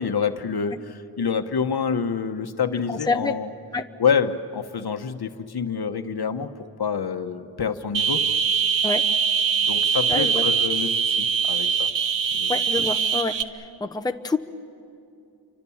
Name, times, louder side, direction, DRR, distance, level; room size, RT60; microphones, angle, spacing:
voice 1, 0.0-3.5 4.0-6.5 6.8-8.2 9.6-11.9 12.3-12.6, left 6 dB, 60° left, 8 dB, 1.2 m, -27 dB
voice 2, 2.9-3.3 3.7-3.8 8.8-9.0 10.1-10.4 12.5-13.3 13.8-14.4, left 3 dB, 10° left, 4 dB, 0.9 m, -26 dB
sound 1, 7.9-13.4, right 6 dB, 80° right, 1.0 m, -22 dB
29.0 x 25.0 x 7.2 m, 2.5 s
wide cardioid pair, 90°, 44 cm